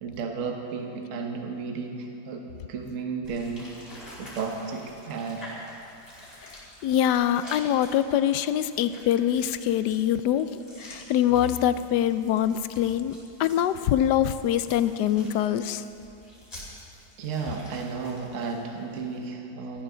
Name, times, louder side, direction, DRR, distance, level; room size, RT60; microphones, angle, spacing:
voice 1, 0.0-3.7 4.2-5.5 10.9-11.0 17.2-19.8, right 5 dB, 55° right, 3 dB, 1.4 m, -33 dB
sound 1, 3.2-19.2, equal, 35° left, 4.4 m, -47 dB
voice 2, 6.8-15.8, left 10 dB, 90° left, 13 dB, 1.2 m, -24 dB
18.0 x 14.0 x 3.9 m, 2.8 s
omnidirectional pair, 1.7 m